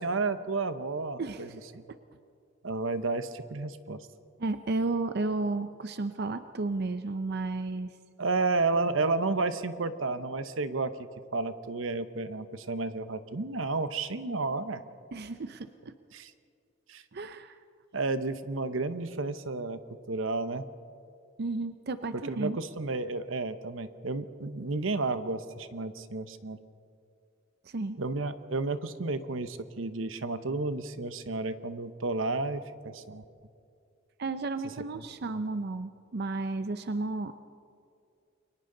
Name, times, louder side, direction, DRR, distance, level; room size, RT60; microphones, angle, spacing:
voice 1, 0.0-1.5 1.7-1.8 2.6-4.0 8.2-10.9 11.3-14.8 16.1-16.3 16.9-17.0 17.9-19.8 20.1-20.6 22.2-26.6 28.0-33.2, right 3 dB, 85° right, 11 dB, 0.9 m, -31 dB
voice 2, 4.4-7.9 15.1-15.9 17.1-17.6 21.4-22.6 27.7-28.0 34.2-37.3, right 3 dB, 55° right, 10 dB, 0.6 m, -33 dB
29.5 x 23.5 x 3.9 m, 2.4 s
head